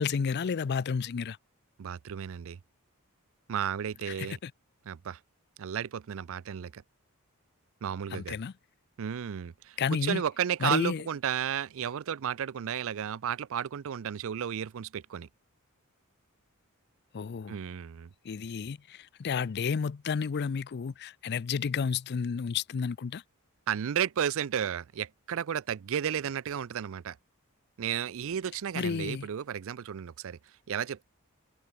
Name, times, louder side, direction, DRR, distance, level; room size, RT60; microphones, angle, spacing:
voice 1, 0.0-1.4 4.2-4.5 8.1-8.5 9.8-10.2 10.6-11.0 17.1-17.6 18.2-23.2 28.7-29.3, left 6 dB, 50° left, 0.4 m, -31 dB
voice 2, 1.8-2.6 3.5-4.4 4.9-5.2 5.6-6.8 7.8-8.4 9.0-15.3 17.5-18.1 23.7-27.2 27.8-30.4 30.7-31.0, right 8 dB, 65° right, 0.4 m, -33 dB
head